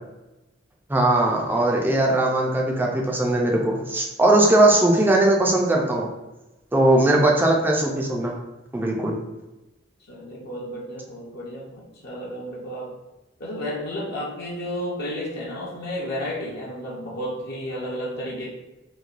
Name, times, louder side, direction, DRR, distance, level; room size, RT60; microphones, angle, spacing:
voice 1, 0.9-6.1 6.7-8.4 8.7-9.2, right 1 dB, 10° right, -1 dB, 0.4 m, -19 dB
voice 2, 10.1-12.9 13.4-18.5, equal, 55° left, -3 dB, 0.5 m, -32 dB
3.0 x 2.2 x 2.4 m, 1.0 s
head